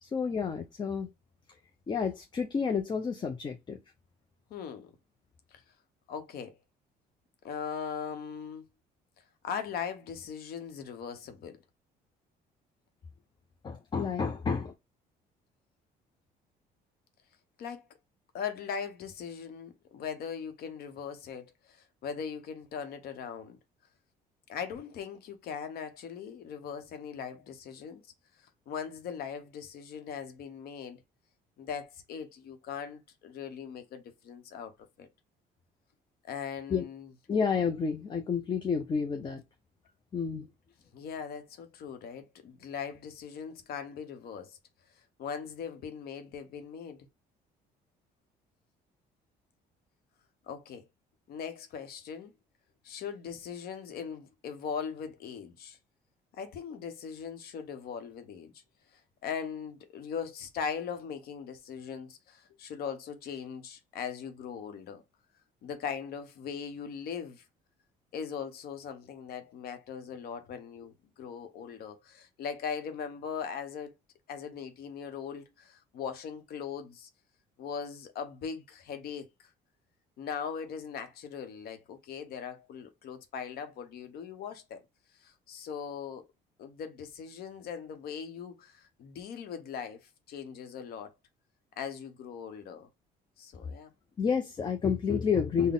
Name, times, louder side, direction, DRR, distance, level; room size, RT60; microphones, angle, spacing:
voice 1, 0.0-1.1 1.9-3.8 13.6-14.7 36.7-36.9 37.3-39.4 40.1-40.5 94.2-95.7, left 6 dB, 25° left, 0.5 m, -30 dB
voice 2, 4.5-4.9 5.5-5.6 6.1-6.6 7.4-8.6 9.4-11.5 17.6-17.8 18.3-23.6 24.5-28.0 28.7-31.0 31.6-34.7 35.0-35.1 36.3-37.1 40.9-44.6 45.2-47.1 50.5-50.9 51.3-52.3 52.8-55.8 56.3-58.5 58.9-65.0 65.6-67.4 68.1-73.9 74.3-77.1 77.6-79.5 80.2-84.8 85.2-86.3 86.6-91.1 91.8-92.9 93.4-93.9, left 7 dB, 65° left, 0.8 m, -40 dB
3.8 x 2.1 x 3.7 m
cardioid pair, 110°, 17 cm